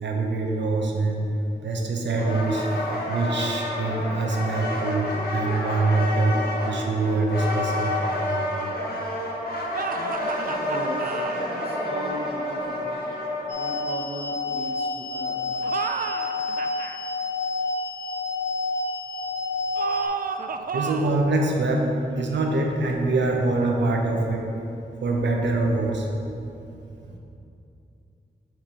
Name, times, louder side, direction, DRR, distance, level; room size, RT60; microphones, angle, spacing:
voice 1, 0.0-1.3 1.6-2.7 3.1-6.4 6.6-8.0 20.7-24.5 25.0-26.1 27.0-27.2, right 2 dB, 75° right, 1 dB, 0.9 m, -24 dB
sound 1, 2.2-13.9, left 1 dB, 55° left, 1.4 m, -29 dB
sound 2, 9.7-11.4 15.5-17.0 19.7-21.2, right 5 dB, 50° right, 0.4 m, -31 dB
voice 2, 10.4-13.1 13.5-15.5, equal, 30° right, -3 dB, 1.3 m, -37 dB
sound 3, 13.5-20.1, left 3 dB, 85° left, 0.8 m, -29 dB
7.6 x 3.0 x 5.3 m, 2.8 s
cardioid pair, 45°, 18 cm